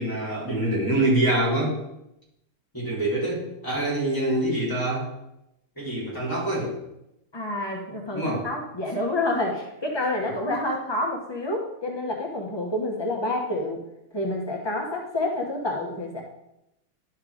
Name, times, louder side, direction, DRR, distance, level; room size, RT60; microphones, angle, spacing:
voice 1, 0.0-1.8 2.7-5.1 5.8-6.7 8.1-8.5, right 1 dB, 10° left, -4 dB, 3.3 m, -25 dB
voice 2, 7.3-13.8 14.1-16.2, left 2 dB, 45° left, 0 dB, 0.3 m, -28 dB
11.0 x 4.6 x 5.0 m, 0.86 s
omnidirectional pair, 2.4 m